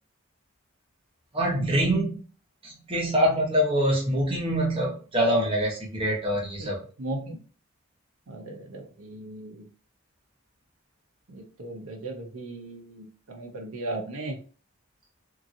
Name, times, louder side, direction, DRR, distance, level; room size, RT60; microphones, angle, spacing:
voice 1, 1.3-2.1 2.6-6.8, equal, 25° right, -3 dB, 0.9 m, -25 dB
voice 2, 7.0-7.4 8.3-9.7 11.3-14.4, right 2 dB, 75° right, 3 dB, 0.6 m, -37 dB
2.8 x 2.6 x 2.5 m, 0.39 s
head